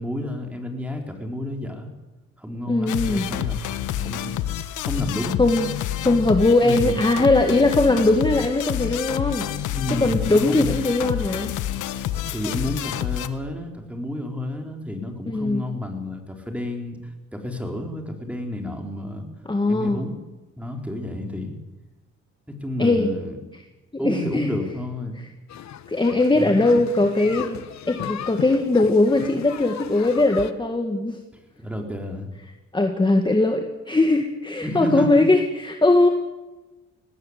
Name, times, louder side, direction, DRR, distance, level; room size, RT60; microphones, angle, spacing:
voice 1, 0.0-1.9 2.4-4.3 4.8-5.4 6.6-7.0 9.6-10.7 12.3-17.0 17.3-19.2 19.7-20.1 20.6-21.6 22.6-23.4 24.0-25.2 26.3-26.6 31.3-32.3 34.6-35.2, left 1 dB, 5° right, 3 dB, 4.5 m, -30 dB
voice 2, 2.7-3.3 5.4-5.7 6.0-9.5 9.9-11.5 15.3-15.6 19.5-20.0 22.8-23.1 23.9-24.5 25.9-27.6 27.9-31.2 32.7-36.1, left 2 dB, 15° left, 5 dB, 1.9 m, -20 dB
sound 1, 2.9-13.3, left 12 dB, 80° left, 1.3 m, -28 dB
sound 2, 25.5-30.5, left 10 dB, 65° left, 1.2 m, -36 dB
19.0 x 18.0 x 8.2 m, 1.1 s
cardioid pair, 90°, 30 cm